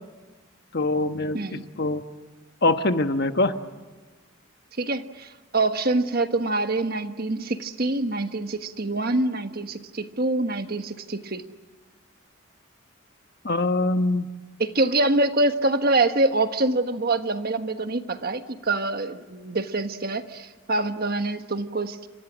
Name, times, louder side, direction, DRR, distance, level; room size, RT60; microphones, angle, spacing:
voice 1, 0.7-2.0 2.6-3.6 13.4-14.3, left 2 dB, 50° left, 8 dB, 1.2 m, -23 dB
voice 2, 4.8-11.4 14.6-22.1, right 2 dB, 45° right, 8 dB, 1.4 m, -25 dB
29.5 x 27.5 x 6.3 m, 1.3 s
head